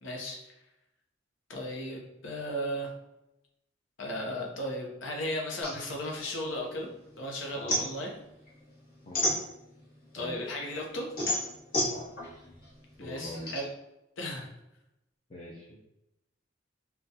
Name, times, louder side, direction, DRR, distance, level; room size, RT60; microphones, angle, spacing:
voice 1, 0.0-0.5 1.5-2.9 4.0-6.9 7.2-8.1 10.1-11.1 13.0-13.7 14.2-14.5, equal, 90° left, 0 dB, 0.7 m, -35 dB
sound 1, 5.6-7.1 7.4-10.0 10.4-13.6, equal, 55° left, 1.2 m, -32 dB
voice 2, 13.0-13.5 15.3-15.8, left 1 dB, 35° left, -6 dB, 0.5 m, -43 dB
3.6 x 2.2 x 2.7 m, 0.91 s
head